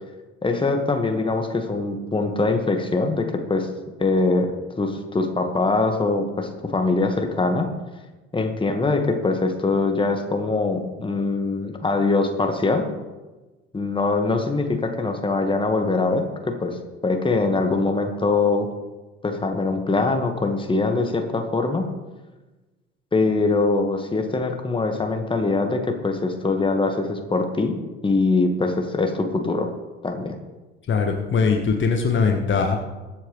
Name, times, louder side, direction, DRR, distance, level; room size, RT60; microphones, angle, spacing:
voice 1, 0.4-3.7 4.0-7.7 8.3-12.9 13.7-18.7 19.2-21.9 23.1-29.7 30.0-30.4, left 3 dB, 15° left, 5 dB, 1.7 m, -23 dB
voice 2, 30.9-32.8, left 5 dB, 35° left, 3 dB, 1.4 m, -21 dB
22.5 x 8.2 x 3.3 m, 1.2 s
figure-of-eight pair, 60°, 33 cm